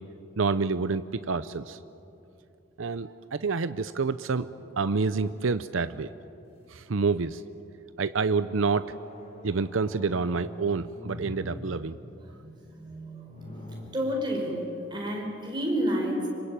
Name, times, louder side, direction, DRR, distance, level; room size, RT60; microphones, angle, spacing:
voice 1, 0.4-1.8 2.8-4.5 4.8-6.1 6.7-7.4 8.0-8.9 9.4-12.0, right 4 dB, 85° right, 12 dB, 0.7 m, -28 dB
sound 1, 4.4-6.1 6.7-7.2 7.9-13.8, equal, 30° left, 5.6 m, -45 dB
voice 2, 13.0-13.5 13.9-14.6 14.9-16.3, equal, 20° right, -1 dB, 5.8 m, -29 dB
26.5 x 24.0 x 8.9 m, 2.7 s
head